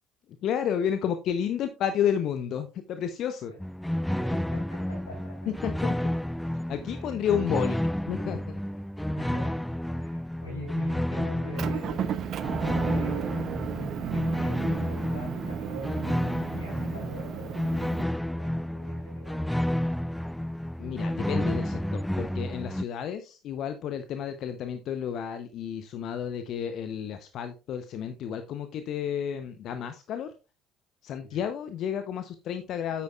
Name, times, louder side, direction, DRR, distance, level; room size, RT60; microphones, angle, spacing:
voice 1, 0.4-3.5 5.6-5.9 6.7-7.8 8.1-8.4 20.8-30.3 31.0-33.0, left 8 dB, 55° left, 0.7 m, -31 dB
sound 1, 3.6-22.8, left 1 dB, 5° left, 0.3 m, -30 dB
voice 2, 4.2-5.5 6.9-7.3 9.1-9.6 9.9-19.8 31.2-31.5, right 1 dB, 85° left, 3.9 m, -44 dB
Motor vehicle (road) / Engine, 11.6-18.0, right 9 dB, 50° right, 0.7 m, -34 dB
9.4 x 8.4 x 2.3 m
figure-of-eight pair, 55°, 0 cm